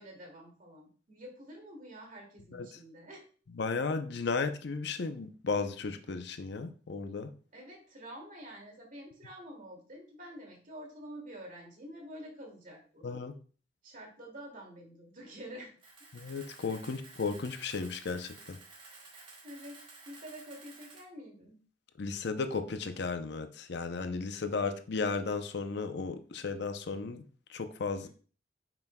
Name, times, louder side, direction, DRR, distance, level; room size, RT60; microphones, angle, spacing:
voice 1, 0.0-3.3 7.5-13.1 13.8-15.7 16.8-16.9 19.4-19.8 20.1-21.6, equal, 45° right, 2.3 m, -48 dB
voice 2, 3.6-7.3 13.0-13.4 16.1-18.6 22.0-28.1, left 4 dB, 60° left, 0.6 m, -35 dB
Camera, 15.8-21.0, right 3 dB, 30° right, 1.7 m, -53 dB
8.7 x 6.0 x 2.2 m
head